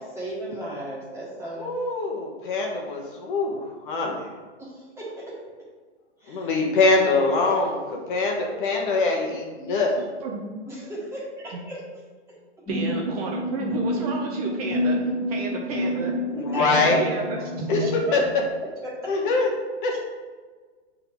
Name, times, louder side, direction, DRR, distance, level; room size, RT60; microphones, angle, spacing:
voice 1, 0.0-1.8 3.1-3.2 4.6-5.4 6.2-6.6 10.7-11.8 16.3-17.1 18.6-19.2, right 1 dB, 10° right, -7 dB, 1.7 m, -36 dB
voice 2, 1.6-4.2 6.3-9.9 16.4-17.0 17.7-17.8 18.1-18.2 19.1-19.5 19.8-20.0, left 3 dB, 45° left, 0 dB, 1.3 m, -23 dB
voice 3, 9.9-10.6 12.7-16.1 16.6-18.2 19.9-20.0, right 3 dB, 35° right, 0 dB, 0.6 m, -32 dB
sound 1, 12.7-18.3, equal, 15° left, 1.5 m, -28 dB
6.7 x 3.8 x 4.6 m, 1.5 s
hypercardioid pair, 145°, 35 cm